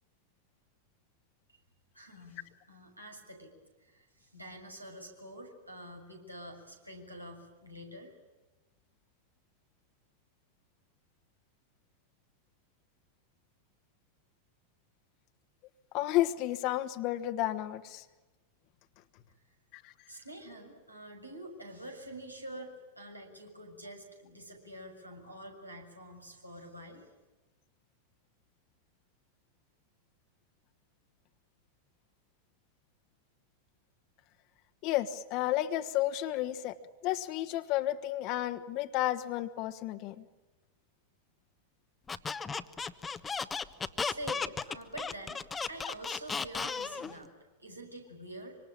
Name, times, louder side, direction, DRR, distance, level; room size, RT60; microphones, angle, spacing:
voice 1, 1.9-3.5 3.8-8.2 20.1-27.1 44.0-48.6, right 1 dB, 90° right, 1 dB, 6.8 m, -47 dB
voice 2, 15.9-18.0 19.7-19.9 34.8-36.8 37.0-40.2, left 14 dB, 40° left, 9 dB, 1.5 m, -32 dB
Squeak, 42.1-47.1, left 5 dB, 15° left, 1.2 m, -35 dB
26.0 x 26.0 x 8.9 m, 1.1 s
figure-of-eight pair, 90°, 0 cm